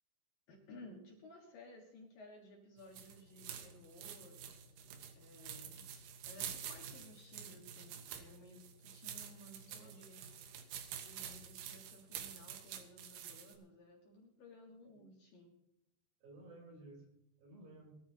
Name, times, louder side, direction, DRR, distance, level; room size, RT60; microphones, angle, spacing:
voice 1, 0.5-4.5 5.1-5.9 6.2-10.3 11.0-15.5, left 2 dB, 60° left, 0 dB, 2.9 m, -57 dB
sound 1, 2.8-13.5, right 9 dB, 90° right, 3.8 m, -48 dB
voice 2, 9.7-10.1 14.8-15.0 16.2-17.1 17.4-17.9, right 2 dB, 50° right, -1 dB, 5.6 m, -56 dB
22.0 x 13.5 x 2.9 m, 0.78 s
omnidirectional pair, 5.4 m